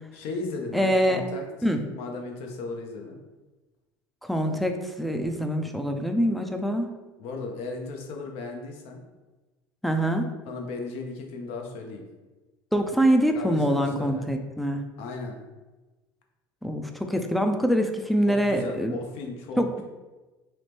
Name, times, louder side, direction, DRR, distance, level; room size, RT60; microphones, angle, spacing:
voice 1, 0.1-1.5 1.9-3.2 7.2-9.0 10.5-12.0 13.3-14.3 15.0-15.4 18.3-19.8, left 3 dB, 65° left, 2 dB, 0.6 m, -36 dB
voice 2, 0.7-1.2 1.6-1.8 4.2-6.9 9.8-10.3 12.7-14.8 16.6-19.0 19.6-19.8, equal, ahead, 5 dB, 0.3 m, -24 dB
2.9 x 2.0 x 3.2 m, 1.2 s
hypercardioid pair, 85°, 11 cm